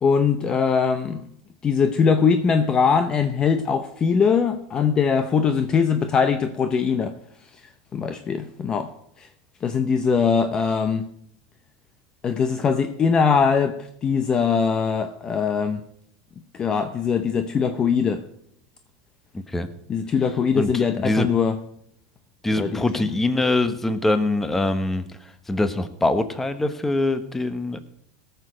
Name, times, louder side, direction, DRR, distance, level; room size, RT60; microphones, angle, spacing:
voice 1, 0.0-1.2 1.6-7.1 7.9-8.9 9.6-11.1 12.2-15.8 16.6-18.2 19.9-21.6 22.6-22.8, left 6 dB, 30° left, 0.7 m, -21 dB
voice 2, 19.3-19.7 20.5-21.3 22.4-27.8, left 2 dB, 10° left, 1.0 m, -24 dB
18.0 x 6.8 x 4.9 m
supercardioid pair, 115°, 3 cm